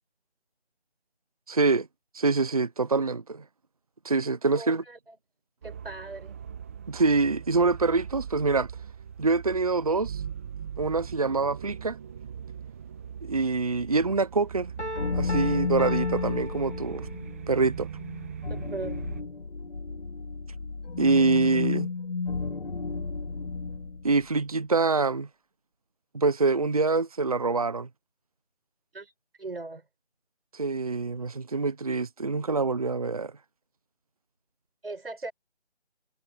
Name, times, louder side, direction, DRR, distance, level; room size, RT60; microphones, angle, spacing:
voice 1, 1.5-1.9 2.1-3.4 4.0-4.8 6.9-8.7 9.2-10.2 10.8-12.0 13.2-14.7 15.1-17.1 17.5-17.9 21.0-21.9 24.0-25.3 26.1-27.9 30.5-33.3, right 3 dB, 35° right, 1.0 m, -25 dB
voice 2, 4.5-5.2 5.6-6.4 18.7-19.1 28.9-29.1 29.4-29.8 34.8-35.3, right 3 dB, 60° right, 6.8 m, -38 dB
sound 1, 5.6-19.2, right 8 dB, 15° right, 1.7 m, -40 dB
Piano, 14.8-17.4, left 1 dB, 85° left, 2.4 m, -37 dB
sound 2, 15.0-24.1, left 4 dB, 55° left, 4.0 m, -32 dB
figure-of-eight pair, 165°, 34 cm